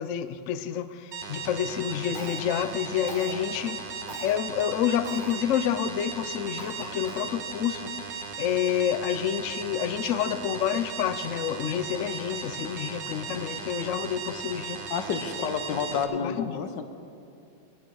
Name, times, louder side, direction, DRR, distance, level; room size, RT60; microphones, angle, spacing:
voice 1, 0.0-7.9 8.4-14.8 15.7-15.9 16.1-16.6, left 9 dB, 90° left, 11 dB, 0.6 m, -29 dB
sound 1, 1.1-16.0, right 6 dB, 75° right, 1.6 m, -37 dB
Cough, 2.1-2.7 3.1-3.4 4.1-4.3 5.0-5.4 5.9-6.0 6.6-7.4, right 2 dB, 25° right, 1.4 m, -42 dB
voice 2, 14.9-16.8, left 6 dB, 70° left, 8 dB, 1.5 m, -30 dB
20.5 x 9.2 x 4.7 m, 2.6 s
omnidirectional pair, 2.1 m